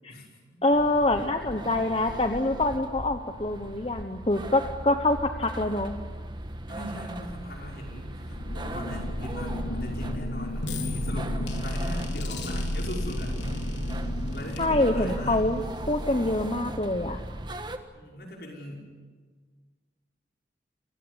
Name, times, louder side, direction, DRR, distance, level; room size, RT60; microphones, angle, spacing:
voice 1, 0.6-5.9 14.6-15.6 15.9-17.2, left 2 dB, 30° left, 6 dB, 1.0 m, -25 dB
sound 1, 0.7-17.8, right 1 dB, 25° right, 1.4 m, -39 dB
voice 2, 6.7-13.4 14.3-15.4 17.9-18.9, left 1 dB, 60° left, 0 dB, 5.8 m, -40 dB
sound 2, 8.2-16.7, left 1 dB, 85° left, 3.7 m, -32 dB
28.0 x 17.0 x 9.9 m, 1.5 s
head